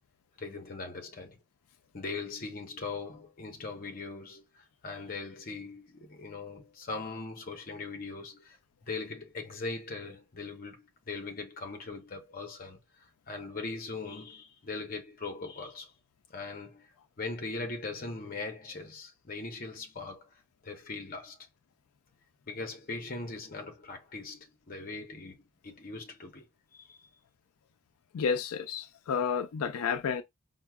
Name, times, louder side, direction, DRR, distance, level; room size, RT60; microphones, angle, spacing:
voice 1, 0.4-1.4 1.9-15.9 16.3-16.9 17.2-21.5 22.5-26.5 26.7-27.0, left 3 dB, 40° left, 0.7 m, -40 dB
voice 2, 28.1-30.2, left 6 dB, 90° left, 0.4 m, -31 dB
4.5 x 2.1 x 2.3 m
head